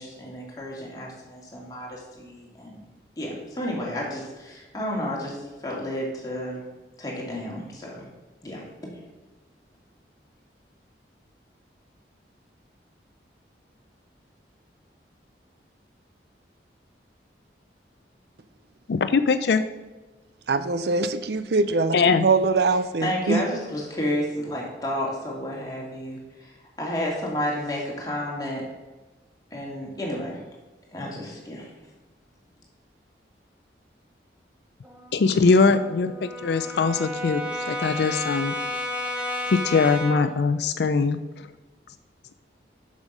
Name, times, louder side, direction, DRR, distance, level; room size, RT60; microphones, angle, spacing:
voice 1, 0.0-2.9 3.2-6.6 7.0-8.1 8.4-8.9 23.0-26.5 26.8-28.6 29.5-30.4 30.9-31.7, left 1 dB, 20° left, -3 dB, 2.0 m, -31 dB
voice 2, 18.9-19.6 21.9-22.2 35.1-37.4 37.7-38.5 39.5-41.5, left 4 dB, 65° left, 11 dB, 0.4 m, -21 dB
voice 3, 20.5-21.9 22.2-23.4, right 3 dB, 65° right, 12 dB, 0.5 m, -22 dB
Brass instrument, 34.8-40.4, left 1 dB, 5° right, 0.7 m, -32 dB
7.1 x 6.4 x 5.3 m, 1.2 s
head